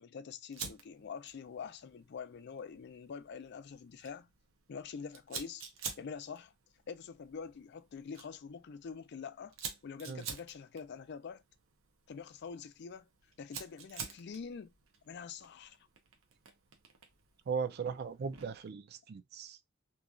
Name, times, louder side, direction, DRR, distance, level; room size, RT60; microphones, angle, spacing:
voice 1, 0.0-4.3 4.7-5.7 6.0-6.5 6.9-9.6 9.8-11.4 12.1-13.1 13.4-14.7 15.1-15.8, left 6 dB, 55° left, 0.4 m, -45 dB
Fire, 0.5-18.7, right 6 dB, 90° right, 0.7 m, -50 dB
voice 2, 17.5-19.6, right 6 dB, 55° right, 0.4 m, -38 dB
3.0 x 2.3 x 2.4 m
head